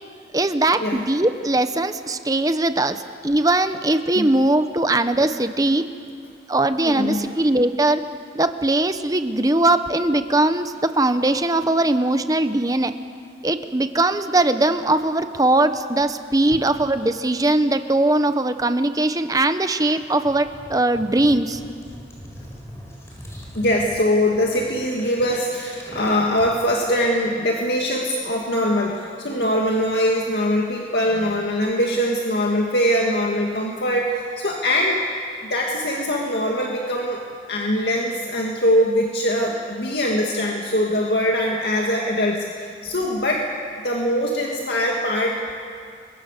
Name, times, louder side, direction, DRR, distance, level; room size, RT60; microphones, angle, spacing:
voice 1, 0.3-5.9 6.5-8.0 8.3-13.0 13.4-21.6, right 2 dB, 20° right, 9 dB, 1.0 m, -20 dB
voice 2, 6.8-7.3 23.5-35.0 35.5-37.2 37.5-43.5 43.8-45.5, equal, 65° left, -1 dB, 2.3 m, -22 dB
sound 1, 20.2-26.6, equal, 15° left, 4.5 m, -40 dB
29.5 x 23.5 x 6.7 m, 2.2 s
head